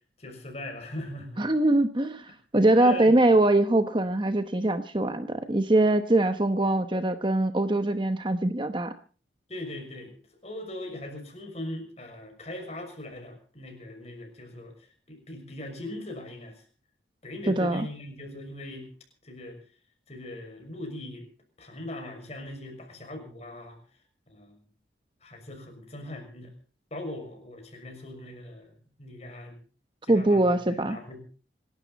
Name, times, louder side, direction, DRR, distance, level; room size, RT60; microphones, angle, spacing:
voice 1, 0.2-1.4 2.3-2.4 2.8-3.4 9.5-10.1 10.4-14.7 15.1-16.6 17.2-18.9 19.2-19.6 20.1-21.3 21.6-23.8 24.3-24.6 25.2-26.5 26.9-28.7 29.0-29.6 30.0-31.2, left 1 dB, 35° left, 3 dB, 6.3 m, -40 dB
voice 2, 1.4-2.3 2.5-8.9 17.5-17.9 30.1-31.2, right 1 dB, 25° right, 9 dB, 0.9 m, -23 dB
27.0 x 12.0 x 4.1 m, 0.38 s
head